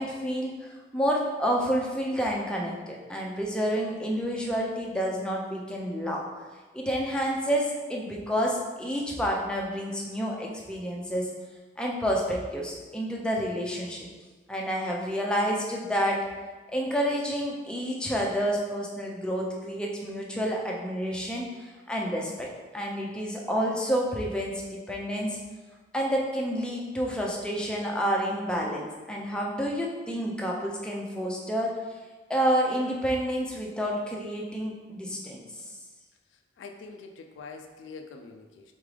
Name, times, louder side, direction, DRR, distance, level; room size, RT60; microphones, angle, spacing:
voice 1, 0.0-6.2 6.7-11.3 11.8-14.1 14.5-16.2 16.7-22.5 22.7-25.4 25.9-31.8 32.3-35.7, equal, 5° left, -2 dB, 0.5 m, -29 dB
voice 2, 36.3-38.7, left 4 dB, 80° left, 4 dB, 0.3 m, -45 dB
3.9 x 3.6 x 3.2 m, 1.3 s
head